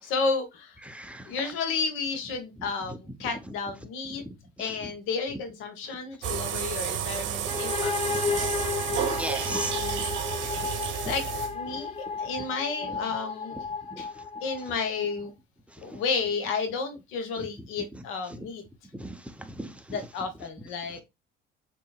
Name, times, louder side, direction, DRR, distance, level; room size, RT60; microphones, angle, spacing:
voice 1, 0.0-0.8 1.3-4.2 4.6-7.9 8.3-8.5 9.5-10.2 10.6-10.7 11.1-11.2 11.5-13.6 14.0-14.1 14.4-15.3 15.8-18.6 19.9-21.0, left 4 dB, 85° left, 1.3 m, -32 dB
voice 2, 0.9-1.3 4.2-4.3 4.6-4.7 8.3-8.4 8.9-10.1 11.0-11.1 13.9-14.0 18.9-19.7, right 1 dB, 5° right, 0.8 m, -37 dB
sound 1, 6.2-11.8, right 10 dB, 70° right, 0.8 m, -31 dB
sound 2, 7.5-15.1, left 6 dB, 30° left, 0.7 m, -33 dB
6.7 x 3.0 x 2.3 m
cardioid pair, 90°, 20 cm